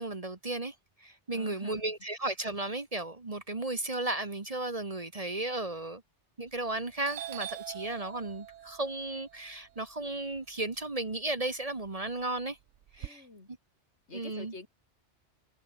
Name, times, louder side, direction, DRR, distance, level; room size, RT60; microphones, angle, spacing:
voice 1, 0.0-6.0 6.4-12.6 12.9-13.2 14.1-14.5, right 2 dB, 30° right, 1.5 m, -35 dB
voice 2, 1.3-1.9 13.0-13.5 14.1-14.7, left 3 dB, 70° left, 3.5 m, -47 dB
Doorbell, 6.5-6.8 7.0-11.2 11.6-13.1, right 11 dB, 85° right, 1.1 m, -44 dB
omnidirectional pair, 1.2 m